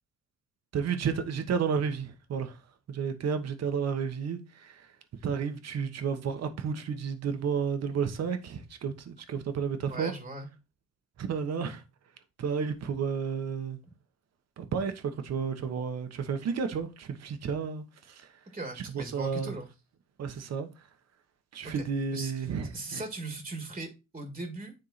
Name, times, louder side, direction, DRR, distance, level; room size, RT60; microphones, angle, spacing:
voice 1, 0.7-2.6 2.9-4.9 5.2-10.1 11.2-11.8 12.4-13.8 14.6-18.3 18.9-19.5 20.2-20.7 21.5-23.0, right 6 dB, 60° right, 1.2 m, -32 dB
voice 2, 9.9-10.5 18.5-19.7 21.6-21.9 22.1-22.5 22.7-24.7, right 2 dB, 20° right, 1.8 m, -39 dB
9.8 x 3.7 x 4.2 m
cardioid pair, 90°, 30 cm